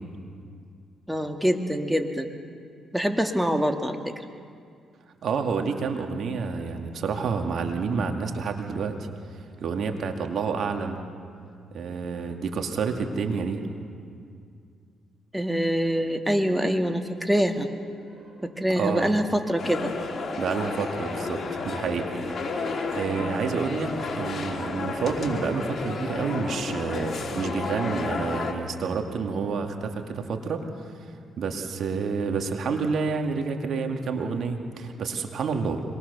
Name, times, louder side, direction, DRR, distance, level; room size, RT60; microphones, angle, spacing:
voice 1, 1.1-2.3 2.9-4.2 15.3-17.7 18.4-19.9 23.2-23.4, equal, 5° right, 5 dB, 1.8 m, -25 dB
voice 2, 5.2-11.0 11.7-13.6 18.7-19.1 20.4-22.2 22.5-22.7 22.9-30.6 31.4-35.8, right 5 dB, 65° right, 4 dB, 2.2 m, -29 dB
sound 1, 17.3-24.1, right 2 dB, 35° right, 6.6 m, -47 dB
sound 2, 19.6-28.5, left 3 dB, 50° left, 3.5 m, -32 dB
26.0 x 20.5 x 6.9 m, 2.3 s
supercardioid pair, 60°, 0 cm